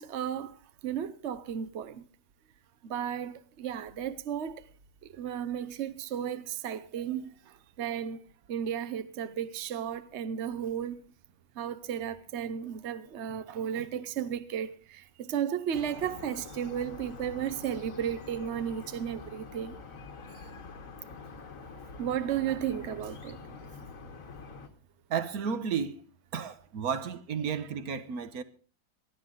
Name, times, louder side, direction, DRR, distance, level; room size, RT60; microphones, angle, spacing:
voice 1, 0.0-2.1 2.8-4.7 5.0-8.2 8.5-11.0 11.6-19.8 22.0-23.4 27.6-27.7, right 9 dB, 70° right, 0.6 m, -34 dB
sound 1, 15.7-24.7, left 4 dB, 40° left, 1.6 m, -46 dB
voice 2, 25.1-26.0 26.3-28.4, right 7 dB, 50° right, 1.3 m, -32 dB
20.0 x 13.5 x 3.9 m
omnidirectional pair, 2.3 m